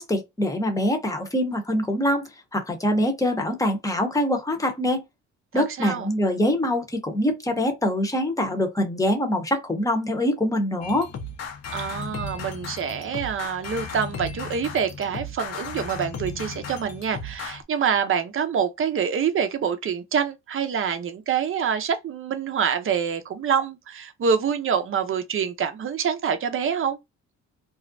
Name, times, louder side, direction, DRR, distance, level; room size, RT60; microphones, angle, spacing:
voice 1, 0.0-5.0 5.5-11.1, left 1 dB, 10° left, 0.8 m, -24 dB
voice 2, 5.5-6.1 11.7-27.0, right 7 dB, 45° right, 0.6 m, -26 dB
sound 1, 10.8-17.6, left 4 dB, 55° left, 0.7 m, -35 dB
2.4 x 2.1 x 2.5 m
cardioid pair, 90°, 30 cm